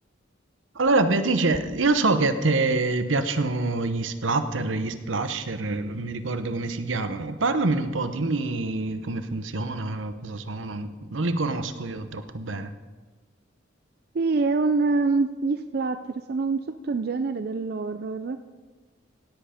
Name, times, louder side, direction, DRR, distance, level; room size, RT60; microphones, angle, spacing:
voice 1, 0.8-12.7, right 3 dB, 80° right, 10 dB, 0.9 m, -26 dB
voice 2, 14.1-18.4, right 3 dB, 50° right, 9 dB, 0.4 m, -25 dB
17.0 x 8.0 x 5.1 m, 1.3 s
head